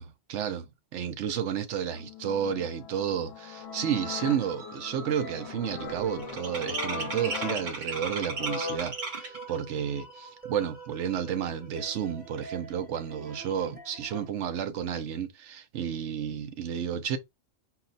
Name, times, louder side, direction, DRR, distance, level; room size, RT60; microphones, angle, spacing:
voice 1, 0.0-17.2, right 8 dB, 80° right, 1.0 m, -31 dB
sound 1, 1.9-8.8, left 8 dB, 65° left, 0.9 m, -40 dB
sound 2, 3.6-14.3, right 5 dB, 10° right, 0.9 m, -46 dB
sound 3, 3.8-3.9 4.2-4.6 4.9-9.5, right 3 dB, 45° right, 1.0 m, -36 dB
4.4 x 2.1 x 3.9 m
omnidirectional pair, 1.2 m